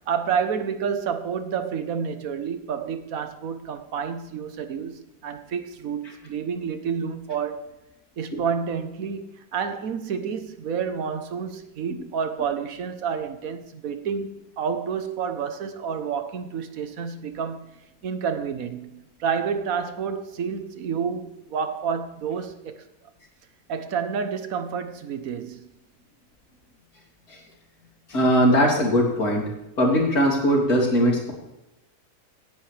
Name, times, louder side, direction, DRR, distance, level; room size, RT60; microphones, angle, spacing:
voice 1, 0.1-7.6 8.2-17.8 18.0-22.8 23.7-25.7, right 6 dB, 65° right, 1.3 m, -29 dB
voice 2, 28.1-29.5 29.8-31.3, equal, 70° left, 3.4 m, -20 dB
17.5 x 10.5 x 3.3 m
omnidirectional pair, 1.6 m